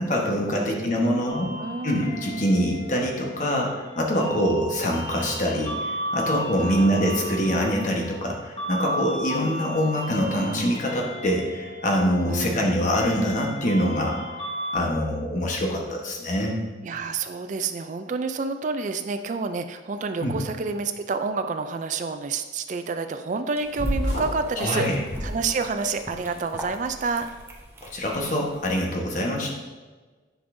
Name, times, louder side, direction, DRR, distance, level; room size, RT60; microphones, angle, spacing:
voice 1, 0.0-1.5 1.8-14.2 14.7-16.6 20.2-20.4 24.6-25.0 27.9-29.5, equal, 45° left, 0 dB, 1.2 m, -24 dB
sound 1, 1.3-14.8, equal, 25° left, 1.0 m, -35 dB
voice 2, 1.6-2.5 6.6-7.3 12.3-12.7 16.8-24.9 25.2-27.3, right 4 dB, 45° right, 9 dB, 0.3 m, -29 dB
sound 2, 23.6-28.8, equal, 15° right, 0.8 m, -43 dB
sound 3, 23.8-24.5 25.0-26.0, equal, 85° left, 1.2 m, -29 dB
10.0 x 5.3 x 2.6 m, 1.4 s
head